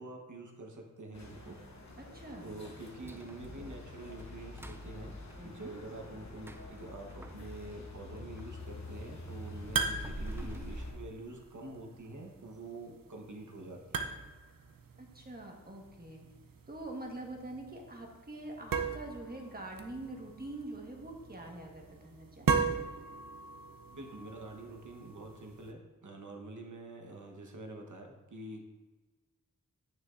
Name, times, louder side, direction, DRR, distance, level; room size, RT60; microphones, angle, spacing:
voice 1, 0.0-1.6 2.4-5.1 5.4-14.1 23.9-28.6, right 2 dB, 65° right, 2 dB, 1.2 m, -46 dB
sound 1, 1.1-10.9, left 2 dB, 55° left, 1.2 m, -46 dB
voice 2, 2.1-2.5 5.4-5.7 10.4-10.7 15.0-16.2 16.7-22.8, right 1 dB, 30° right, 0 dB, 1.5 m, -45 dB
sound 2, 2.6-8.6 9.0-11.8 12.2-12.3 12.7-12.9 13.4-13.7 14.0-14.1 14.7-14.8, right 2 dB, 5° right, 0.4 m, -49 dB
sound 3, 8.6-25.7, right 5 dB, 85° right, 0.7 m, -39 dB
8.9 x 6.7 x 2.6 m, 1.2 s
wide cardioid pair, 60°, 33 cm